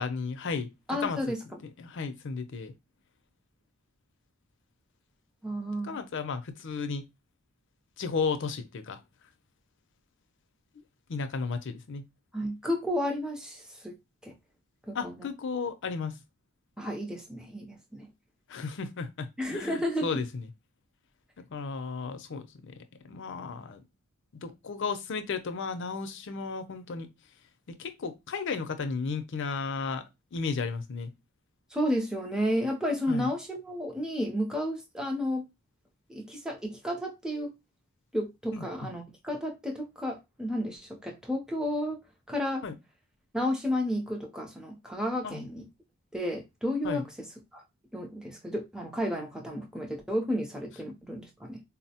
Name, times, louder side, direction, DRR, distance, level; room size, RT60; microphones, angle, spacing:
voice 1, 0.0-1.2 1.6-2.7 5.8-7.0 8.0-9.0 11.1-12.0 14.9-16.2 18.5-20.5 21.5-22.5 23.1-23.8 24.3-27.1 27.8-30.0 30.3-31.1 33.1-33.3 38.5-38.9 42.6-42.7 45.2-45.5 46.8-47.1, left 4 dB, 55° left, 0.5 m, -34 dB
voice 2, 0.9-1.4 5.4-6.0 12.3-13.9 14.2-14.3 14.9-15.3 16.8-18.1 19.4-20.1 31.7-35.4 36.1-37.5 38.1-42.0 42.3-42.6 43.3-45.6 46.1-47.0 47.5-47.6 47.9-51.6, equal, 5° right, 0.5 m, -32 dB
4.0 x 2.0 x 2.7 m
head